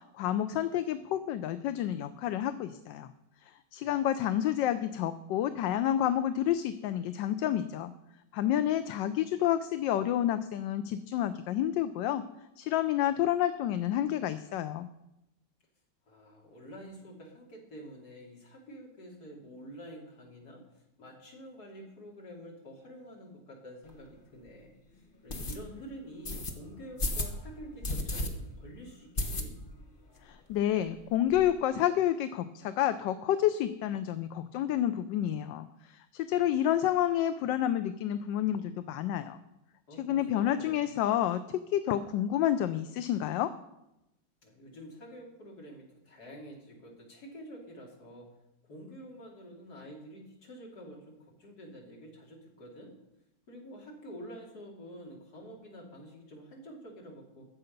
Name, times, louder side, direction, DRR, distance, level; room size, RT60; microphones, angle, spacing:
voice 1, 0.2-3.1 3.7-7.9 8.3-12.2 12.6-14.9 30.2-39.4 40.0-43.5, left 11 dB, 80° left, 11 dB, 1.2 m, -29 dB
voice 2, 3.8-4.2 16.1-20.6 21.0-29.5 39.9-40.8 44.4-48.3 48.6-52.9 53.5-57.5, equal, 55° left, -2 dB, 3.3 m, -48 dB
sound 1, 23.9-24.0 24.5-24.6 25.3-25.6 26.2-26.5 27.0-27.3 27.8-28.3 28.6-28.7 29.2-29.8 30.2-30.3 30.5-30.6 30.9-31.5, left 1 dB, 35° left, 1.1 m, -33 dB
14.5 x 7.9 x 5.3 m, 0.88 s
omnidirectional pair, 2.0 m